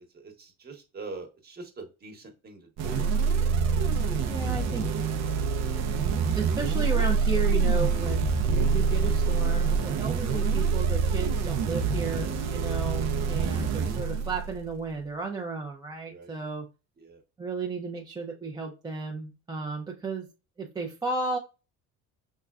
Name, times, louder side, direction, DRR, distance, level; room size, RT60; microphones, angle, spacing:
voice 1, 0.1-3.1 5.2-5.8 16.1-16.3 17.0-17.2, right 3 dB, 30° right, 3 dB, 1.1 m, -44 dB
sound 1, 2.8-14.7, right 5 dB, 60° right, 0.6 m, -26 dB
voice 2, 4.3-4.9 5.7-5.9 6.3-16.7 17.4-20.3 20.6-21.4, right 4 dB, 15° right, 0 dB, 0.5 m, -34 dB
5.3 x 2.2 x 2.3 m, 0.29 s
cardioid pair, 130°, 31 cm